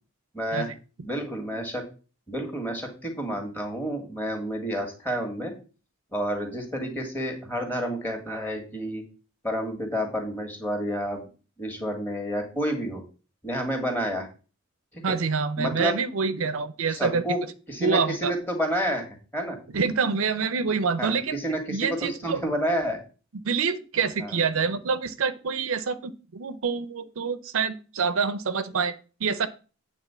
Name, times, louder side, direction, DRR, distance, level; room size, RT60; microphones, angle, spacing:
voice 1, 0.3-0.7 1.0-1.8 2.3-5.5 6.1-9.0 9.4-11.2 11.6-13.0 13.4-14.3 14.9-15.0 15.6-16.0 16.9-17.4 17.7-19.6 21.0-23.0 24.2-24.3, equal, 10° left, 2 dB, 1.8 m, -29 dB
voice 2, 15.0-17.2 17.8-18.3 19.7-21.4 21.7-22.4 23.4-28.9 29.2-29.5, right 5 dB, 70° right, 13 dB, 0.6 m, -26 dB
9.0 x 3.7 x 7.0 m, 0.36 s
head